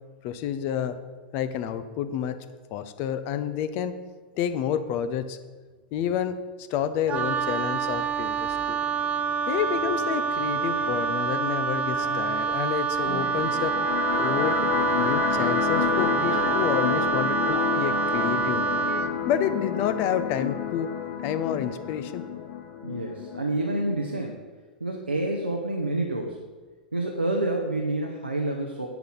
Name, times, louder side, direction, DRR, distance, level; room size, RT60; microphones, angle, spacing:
voice 1, 0.2-0.9 1.3-2.4 2.7-4.0 4.4-5.4 5.9-8.8 9.5-13.7 14.2-14.6 15.0-18.6 19.3-20.9 21.2-22.2, left 9 dB, 40° left, 11 dB, 0.6 m, -29 dB
Wind instrument woodwind instrument, 7.1-19.2, right 5 dB, 25° right, 0.5 m, -27 dB
sound 1, 8.5-19.5, equal, 75° left, 3.4 m, -42 dB
sound 2, 13.1-24.1, left 7 dB, 60° left, 2.4 m, -30 dB
voice 2, 22.8-24.5 24.8-26.4 26.9-28.9, right 2 dB, 90° right, 1 dB, 0.9 m, -28 dB
10.5 x 8.1 x 4.0 m, 1.3 s
figure-of-eight pair, 95°, 5 cm